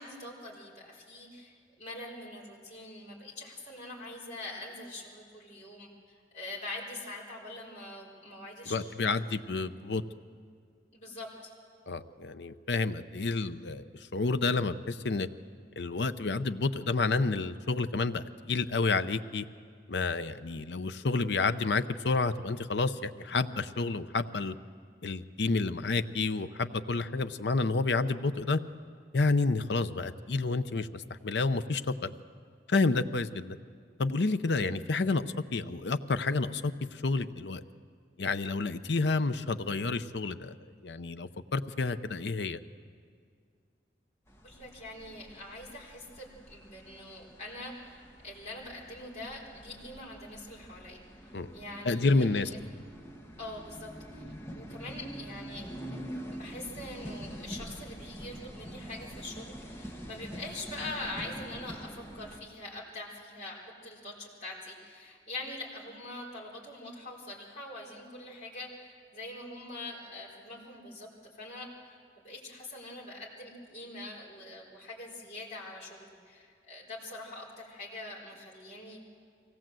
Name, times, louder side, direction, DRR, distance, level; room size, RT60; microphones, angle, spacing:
voice 1, 0.0-9.4 10.9-11.5 44.4-52.6 53.4-71.1 71.4-79.0, left 2 dB, 40° left, -6 dB, 4.2 m, -44 dB
voice 2, 8.7-10.0 11.9-13.8 14.1-15.3 15.8-19.5 19.9-24.5 25.0-28.6 29.1-32.2 32.7-33.6 34.0-37.6 38.2-40.6 40.8-42.6 51.3-51.5 51.8-52.5, left 3 dB, 75° left, 11 dB, 0.7 m, -29 dB
sound 1, 44.3-62.4, equal, 15° left, 1.4 m, -45 dB
23.5 x 17.5 x 7.6 m, 2.2 s
head